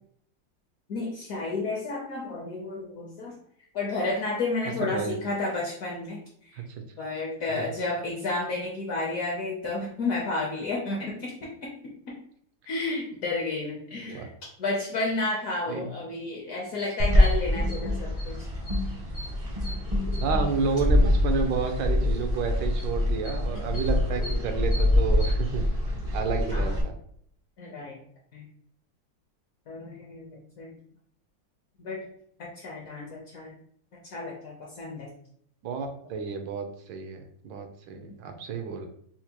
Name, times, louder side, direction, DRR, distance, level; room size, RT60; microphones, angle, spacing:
voice 1, 0.9-3.4 3.7-6.2 6.5-6.6 7.0-12.2 12.7-14.3 14.6-18.5 19.7-19.8 24.3-24.4 26.5-26.8 27.6-28.0 28.3-28.5 29.7-30.7 31.8-32.0 32.4-33.6 34.0-35.1 38.3-38.4, left 3 dB, 65° left, -2 dB, 0.8 m, -32 dB
voice 2, 4.8-5.2 6.6-6.7 7.6-7.7 14.1-14.3 15.7-15.9 20.2-25.7 26.1-26.9 35.6-38.9, right 5 dB, 80° right, 5 dB, 1.3 m, -30 dB
sound 1, 17.0-26.8, left 1 dB, 45° right, 0.4 m, -25 dB
4.3 x 2.2 x 2.8 m, 0.65 s
omnidirectional pair, 2.0 m